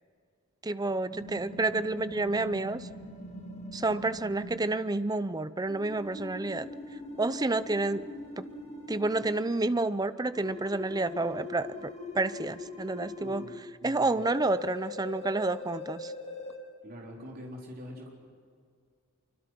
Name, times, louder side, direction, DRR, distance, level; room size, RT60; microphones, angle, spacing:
voice 1, 0.6-2.9 3.7-6.7 7.2-8.1 8.4-8.5 8.9-16.1, right 2 dB, 20° right, 14 dB, 0.6 m, -30 dB
sound 1, 1.1-4.6 5.7-9.2 10.3-13.5 14.2-16.6, left 2 dB, 35° left, 4.4 m, -42 dB
voice 2, 13.2-14.2 16.8-18.1, equal, 45° right, -2 dB, 4.2 m, -45 dB
26.0 x 24.5 x 6.1 m, 2.1 s
head